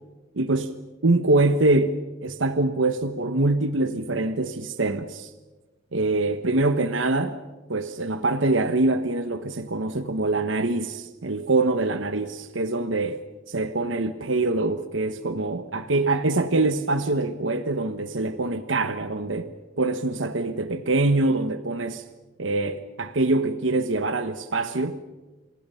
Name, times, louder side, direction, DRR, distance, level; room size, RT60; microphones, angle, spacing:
voice 1, 0.3-0.7 1.0-5.3 5.9-7.4 7.7-13.2 13.5-22.0 22.4-25.0, right 2 dB, 75° right, 1.2 m, -24 dB
29.0 x 27.0 x 5.7 m
head